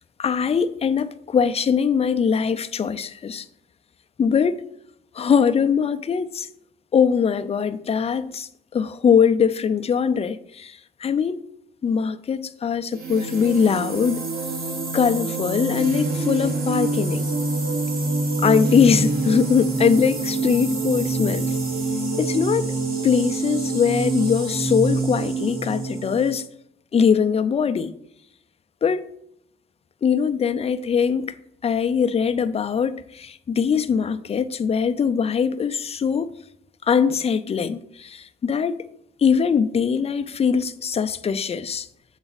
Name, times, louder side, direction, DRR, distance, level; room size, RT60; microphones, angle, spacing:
voice 1, 0.2-3.4 4.2-4.7 5.2-6.5 6.9-10.7 11.0-11.4 11.8-14.2 14.9-17.3 18.4-21.5 22.2-22.7 23.0-26.5 26.9-27.9 28.8-29.0 30.0-31.4 31.6-36.3 36.9-38.8 39.2-41.9, left 6 dB, 30° left, 0.4 m, -21 dB
sound 1, 12.9-26.3, right 3 dB, 50° right, 1.5 m, -26 dB
7.0 x 4.0 x 4.0 m
cardioid pair, 90°, 20 cm